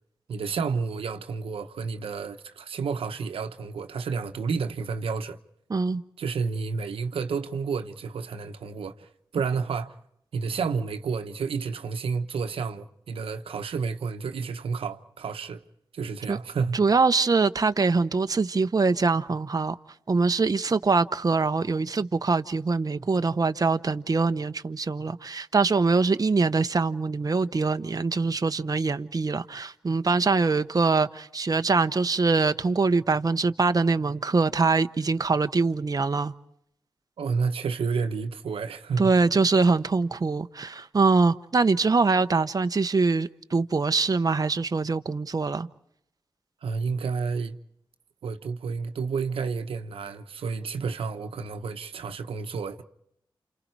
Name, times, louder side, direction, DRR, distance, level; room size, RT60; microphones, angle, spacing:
voice 1, 0.3-5.4 6.2-9.9 10.3-15.6 15.9-16.8 37.2-39.1 46.6-47.6 48.2-52.8, right 5 dB, 90° right, 1.0 m, -30 dB
voice 2, 5.7-6.0 16.3-16.4 16.7-19.8 20.1-36.3 39.0-45.7, right 4 dB, 40° right, 0.9 m, -23 dB
29.5 x 28.0 x 4.7 m
cardioid pair, 50°, 9 cm